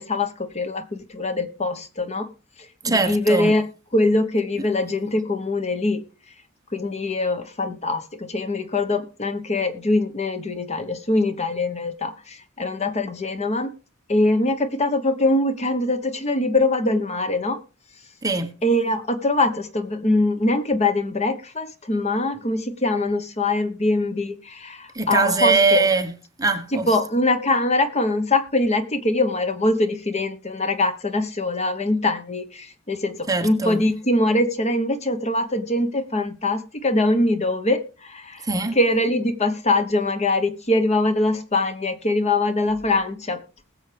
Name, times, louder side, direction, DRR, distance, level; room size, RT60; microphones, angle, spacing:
voice 1, 0.0-2.3 2.9-3.6 3.9-6.0 6.7-13.7 14.1-17.6 18.6-25.9 26.7-38.4 38.7-43.4, left 2 dB, 30° left, 1.2 m, -23 dB
voice 2, 2.8-3.6 4.5-4.7 18.2-18.5 24.9-27.0 33.3-33.9 38.4-38.8, right 4 dB, 15° right, 1.2 m, -22 dB
20.5 x 7.4 x 3.4 m
head